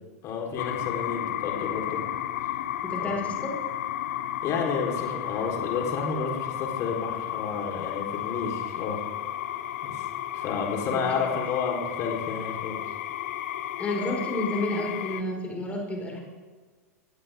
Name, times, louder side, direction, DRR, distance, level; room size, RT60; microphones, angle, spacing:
voice 1, 0.2-2.0 3.0-3.1 4.4-9.0 9.8-10.0 10.3-12.8, left 5 dB, 35° left, 1 dB, 4.0 m, -31 dB
sound 1, 0.6-15.2, left 12 dB, 55° left, 1.0 m, -33 dB
voice 2, 2.8-3.6 10.9-11.3 13.8-16.2, left 1 dB, 15° left, 0 dB, 5.2 m, -31 dB
19.0 x 17.5 x 3.7 m, 1.4 s
figure-of-eight pair, 90°, 8 cm